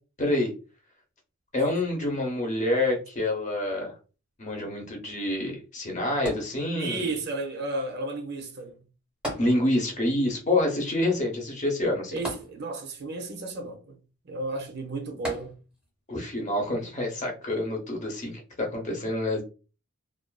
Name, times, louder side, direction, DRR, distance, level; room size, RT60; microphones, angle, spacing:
voice 1, 0.2-0.5 1.5-3.9 4.4-7.1 9.4-12.2 16.1-19.4, left 1 dB, 35° left, 0.7 m, -27 dB
sound 1, 6.3-7.2 9.2-10.1 10.4-10.5 12.3-13.1 15.2-16.0 16.7-16.8, equal, 5° right, 0.7 m, -37 dB
voice 2, 6.7-8.8 12.1-14.0 14.2-15.5, right 2 dB, 50° right, 0.5 m, -33 dB
2.4 x 2.3 x 2.2 m
head